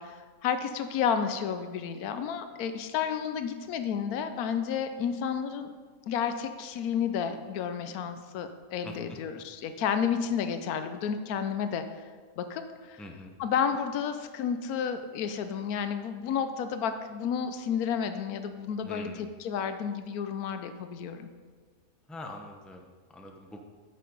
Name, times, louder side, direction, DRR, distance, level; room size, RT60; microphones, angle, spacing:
voice 1, 0.0-5.7 6.1-11.8 12.4-13.0 13.4-21.3, left 7 dB, 85° left, 8 dB, 1.1 m, -31 dB
voice 2, 8.8-9.2 13.0-13.3 18.8-19.3 22.1-23.6, left 1 dB, ahead, 3 dB, 0.5 m, -44 dB
8.9 x 6.6 x 5.3 m, 1.5 s
omnidirectional pair, 1.5 m